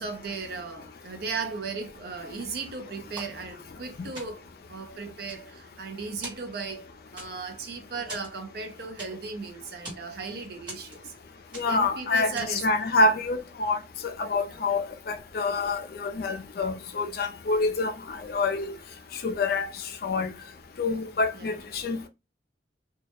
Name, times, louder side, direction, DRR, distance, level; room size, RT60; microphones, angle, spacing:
voice 1, 0.0-11.1 11.7-12.7 14.5-14.6 21.3-21.6, right 4 dB, 55° right, 0.5 m, -36 dB
sound 1, 3.2-3.8 4.1-4.6 5.1-5.9 6.2-6.8 7.2-7.6 8.1-9.4 9.7-10.1 10.7-11.2 11.5-11.9 12.4-12.7, right 1 dB, 25° right, 1.0 m, -43 dB
voice 2, 11.5-18.8 19.2-19.7 20.0-20.3 20.8-22.1, left 3 dB, 55° left, 0.4 m, -27 dB
2.2 x 2.0 x 2.9 m
head